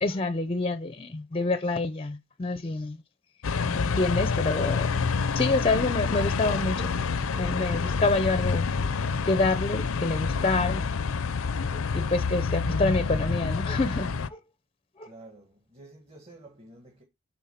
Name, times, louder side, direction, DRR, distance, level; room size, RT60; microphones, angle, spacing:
voice 1, 0.0-3.0 3.7-4.9 5.4-6.9 7.3-8.7 9.2-10.9 11.9-14.4 15.0-15.1, left 3 dB, 25° left, 0.5 m, -27 dB
Road Traffic near Tower of London London, 3.4-14.3, left 5 dB, 85° left, 0.5 m, -28 dB
voice 2, 15.0-17.0, right 2 dB, 30° right, 1.6 m, -50 dB
8.5 x 3.8 x 5.7 m
head